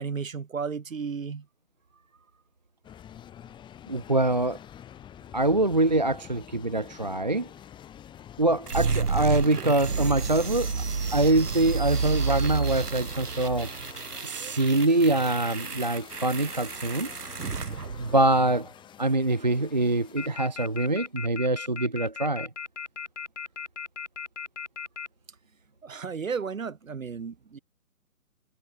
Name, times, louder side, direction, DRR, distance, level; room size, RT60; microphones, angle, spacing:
voice 1, 0.0-1.5 14.3-14.4 25.8-27.6, right 5 dB, 60° right, 2.6 m, -34 dB
sound 1, 2.8-21.1, left 10 dB, 10° left, 7.6 m, -48 dB
voice 2, 3.9-4.6 5.3-7.5 8.4-10.7 11.1-13.7 14.2-17.1 18.0-18.7 19.0-22.5, right 2 dB, 30° right, 0.5 m, -24 dB
sound 2, 8.7-18.6, right 5 dB, 85° right, 1.3 m, -31 dB
sound 3, 20.2-25.1, left 6 dB, 50° left, 1.9 m, -36 dB
figure-of-eight pair, 145°, 45 cm